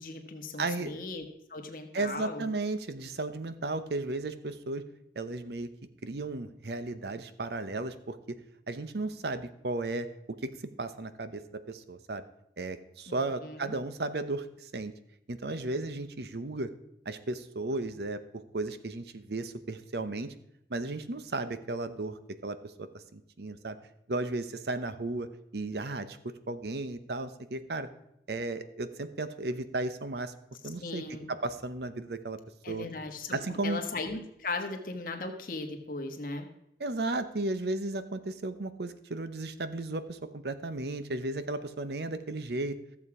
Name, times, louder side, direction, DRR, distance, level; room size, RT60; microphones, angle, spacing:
voice 1, 0.0-2.4 13.1-13.7 30.8-31.3 32.6-36.5, left 3 dB, 50° left, 5 dB, 1.2 m, -38 dB
voice 2, 0.6-1.0 1.9-4.8 5.2-5.7 6.0-8.2 8.7-10.1 10.4-10.5 10.8-12.2 12.6-14.9 15.3-16.7 17.1-20.3 20.7-23.8 24.1-25.3 25.5-26.2 26.5-27.9 28.3-30.3 30.6-32.4 32.7-32.9 33.3-33.8 36.8-42.8, right 2 dB, 70° right, 12 dB, 0.8 m, -34 dB
14.0 x 7.3 x 4.8 m, 0.80 s
head